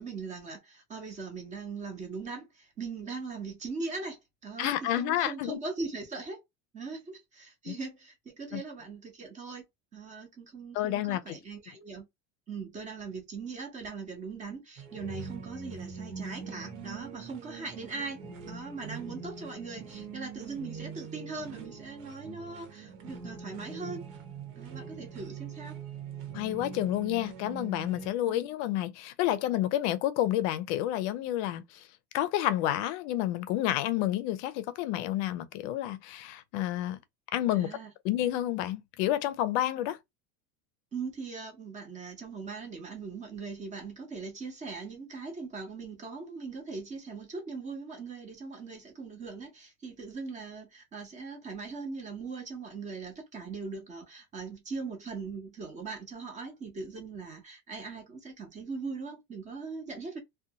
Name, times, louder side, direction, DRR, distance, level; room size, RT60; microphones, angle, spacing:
voice 1, 0.0-6.4 6.7-9.6 9.9-12.1 12.5-24.0 24.6-25.8 28.3-28.5 37.5-37.9 40.9-60.2, right 4 dB, 20° right, 0.7 m, -40 dB
voice 2, 4.6-5.6 7.7-7.8 8.5-8.6 10.7-11.4 26.3-31.8 32.1-37.0 37.3-37.7 38.0-40.0, left 13 dB, 60° left, 0.5 m, -30 dB
sound 1, 14.8-28.1, right 5 dB, 85° right, 1.1 m, -43 dB
2.5 x 2.2 x 2.8 m
cardioid pair, 160°, 39 cm